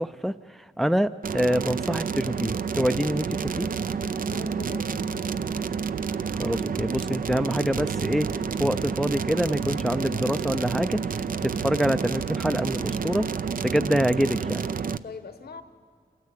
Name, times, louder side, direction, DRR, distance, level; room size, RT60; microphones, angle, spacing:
voice 1, 0.0-3.7 6.4-14.6, equal, ahead, 12 dB, 0.4 m, -26 dB
sound 1, 1.2-15.0, right 6 dB, 60° right, 0.6 m, -29 dB
voice 2, 4.3-5.4 15.0-15.6, left 5 dB, 75° left, 9 dB, 1.2 m, -42 dB
28.0 x 13.5 x 8.3 m, 2.2 s
cardioid pair, 60°, 16 cm